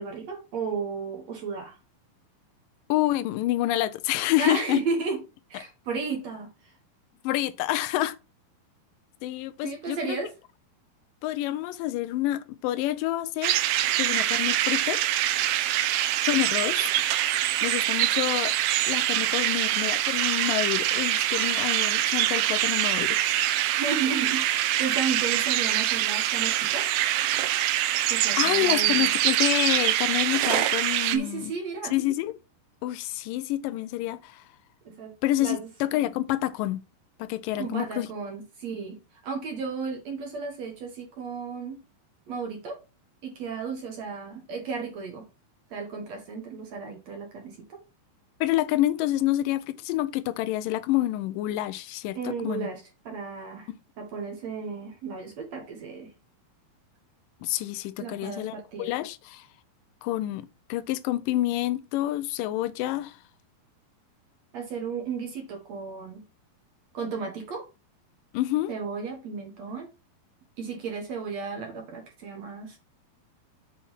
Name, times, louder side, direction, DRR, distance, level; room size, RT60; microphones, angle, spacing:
voice 1, 0.0-1.8 4.4-5.2 5.5-6.7 9.6-10.3 23.8-26.9 28.1-29.0 31.1-32.0 34.8-35.1 35.4-35.7 37.6-41.8 42.3-42.8 43.2-45.3 45.7-47.8 52.1-53.7 54.0-56.1 58.0-58.9 64.5-66.3 66.9-67.6 68.7-69.9 70.6-72.8, right 5 dB, 55° right, 2.2 m, -34 dB
voice 2, 2.9-4.8 7.2-8.2 9.2-10.2 11.2-13.6 14.0-15.0 16.2-16.9 17.6-18.6 18.9-23.2 28.4-31.5 31.9-32.3 32.8-34.4 35.2-36.8 37.2-38.1 48.4-52.7 53.7-53.8 57.4-59.5 60.0-63.2 68.3-68.7, left 15 dB, 85° left, 1.9 m, -28 dB
sound 1, 13.4-31.2, right 13 dB, 80° right, 2.6 m, -24 dB
7.2 x 4.2 x 5.6 m
omnidirectional pair, 4.5 m